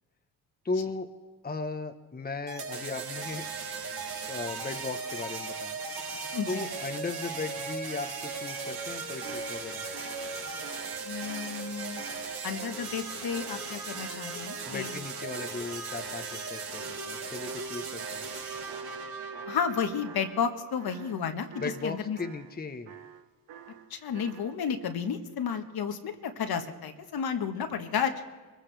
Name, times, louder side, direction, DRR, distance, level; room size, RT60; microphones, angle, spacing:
voice 1, 0.6-1.1 1.4-3.5 4.3-5.8 6.5-9.9 14.7-18.3 21.6-22.9, left 3 dB, 20° left, 7 dB, 1.1 m, -36 dB
sound 1, 2.5-20.4, right 4 dB, 60° right, 3.3 m, -37 dB
voice 2, 6.3-6.7 11.0-12.0 12.4-15.0 19.5-21.5 21.8-22.2 23.9-28.2, left 7 dB, 60° left, 7 dB, 1.5 m, -32 dB
sound 2, 9.2-15.0 15.3-18.4 18.7-19.7 20.0-20.5 20.8-22.6 22.8-24.6, right 8 dB, 80° right, 1.2 m, -49 dB
24.5 x 15.0 x 3.4 m, 1.3 s
supercardioid pair, 60°, 43 cm